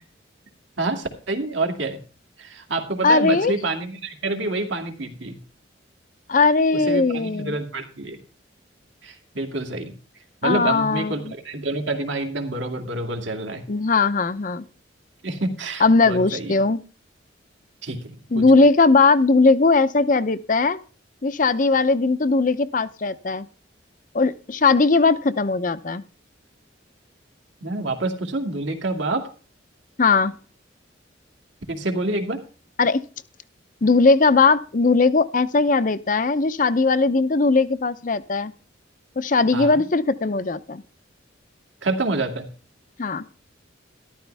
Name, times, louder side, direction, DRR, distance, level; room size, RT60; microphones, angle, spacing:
voice 1, 0.8-2.0 2.4-5.4 6.7-8.2 9.0-9.9 10.4-13.6 15.2-16.6 17.8-18.4 27.6-29.3 31.7-32.4 39.5-39.8 41.8-42.5, right 2 dB, 75° right, 2.5 m, -27 dB
voice 2, 3.0-3.5 6.3-7.6 10.4-11.3 13.7-14.6 15.8-16.8 18.3-20.8 21.2-23.5 24.1-26.0 30.0-30.3 32.8-33.0 33.8-38.5 39.2-40.8 43.0-43.2, left 3 dB, 45° left, 0.7 m, -19 dB
13.0 x 12.5 x 3.4 m
head